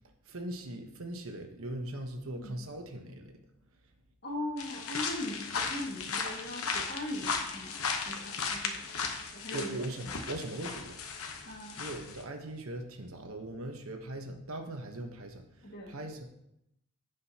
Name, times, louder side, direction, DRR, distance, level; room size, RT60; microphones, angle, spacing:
voice 1, 0.3-3.4 9.5-11.3 11.7-16.2, right 1 dB, 80° right, 4 dB, 1.1 m, -40 dB
voice 2, 4.2-8.8 9.3-10.1 11.5-11.9 15.6-16.1, left 1 dB, 50° left, -1 dB, 1.9 m, -40 dB
sound 1, 4.6-12.2, left 5 dB, 90° left, 1.0 m, -36 dB
15.5 x 5.1 x 2.9 m, 0.82 s
head